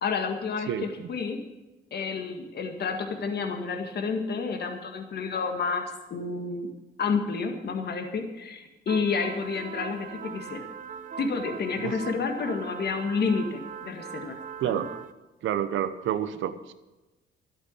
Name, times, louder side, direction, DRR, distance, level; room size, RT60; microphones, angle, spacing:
voice 1, 0.0-1.4 1.9-6.7 7.0-10.7 11.2-14.4 14.6-14.8, left 5 dB, 55° left, 5 dB, 1.9 m, -30 dB
voice 2, 0.7-1.1 11.8-11.9 14.6-14.9 15.4-16.7, right 10 dB, 80° right, 11 dB, 1.0 m, -29 dB
sound 1, 8.9-15.1, right 7 dB, 40° right, 0.9 m, -40 dB
12.0 x 8.2 x 8.3 m, 1.1 s
cardioid pair, 90°, 20 cm